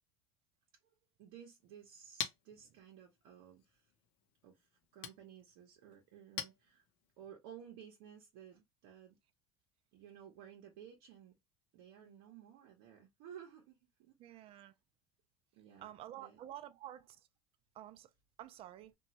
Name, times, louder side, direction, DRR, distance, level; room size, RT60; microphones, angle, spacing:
voice 1, 0.8-3.9 4.4-6.8 7.2-9.2 9.9-11.3 11.7-14.6 15.5-16.4, right 9 dB, 75° right, 0.8 m, -56 dB
Chink clink, 1.6-7.3, left 9 dB, 80° left, 0.6 m, -48 dB
voice 2, 14.2-14.7 15.8-17.3 17.7-18.1 18.4-18.9, right 12 dB, 50° right, 0.5 m, -50 dB
2.9 x 2.3 x 2.8 m
supercardioid pair, 100°, 13 cm